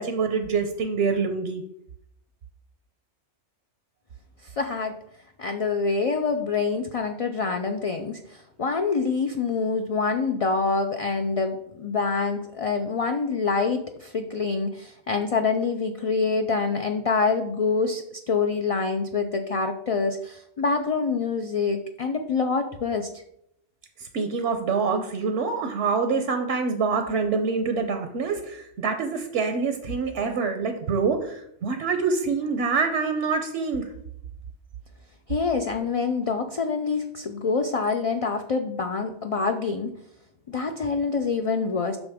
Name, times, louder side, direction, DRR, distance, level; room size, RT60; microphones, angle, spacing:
voice 1, 0.0-1.6 24.0-33.9, right 5 dB, 75° right, 6 dB, 1.0 m, -26 dB
voice 2, 4.4-4.9 5.4-23.1 35.3-39.9 40.5-42.0, left 4 dB, 50° left, 5 dB, 0.4 m, -26 dB
8.0 x 5.8 x 3.5 m, 0.77 s
omnidirectional pair, 1.2 m